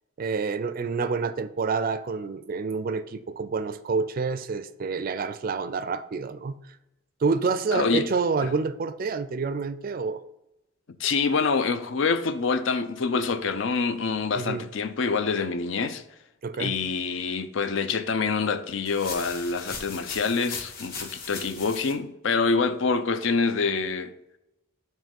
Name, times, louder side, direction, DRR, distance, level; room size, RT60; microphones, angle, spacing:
voice 1, 0.2-6.6 7.2-10.2 14.3-14.7 16.4-16.8, right 4 dB, 45° right, 0.4 m, -28 dB
voice 2, 7.7-8.1 8.4-8.5 11.0-16.0 16.6-24.1, left 4 dB, 65° left, 0.5 m, -26 dB
sound 1, 18.9-21.9, left 4 dB, 45° left, 1.1 m, -38 dB
7.4 x 3.2 x 5.3 m
head